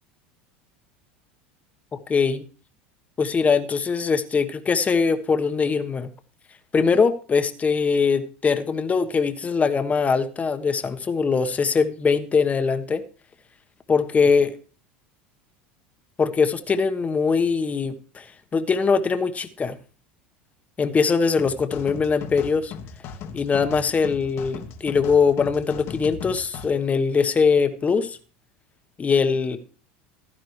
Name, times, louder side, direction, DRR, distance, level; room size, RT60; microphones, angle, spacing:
voice 1, 1.9-2.4 3.2-6.1 6.7-13.0 13.9-14.5 16.2-18.3 18.5-19.8 20.8-22.7 23.3-28.2 29.0-29.6, left 5 dB, 25° left, 9 dB, 1.3 m, -22 dB
sound 1, 21.4-26.7, left 6 dB, 55° left, 1.5 m, -38 dB
15.5 x 11.5 x 3.3 m, 0.38 s
hypercardioid pair, 90°, 6 cm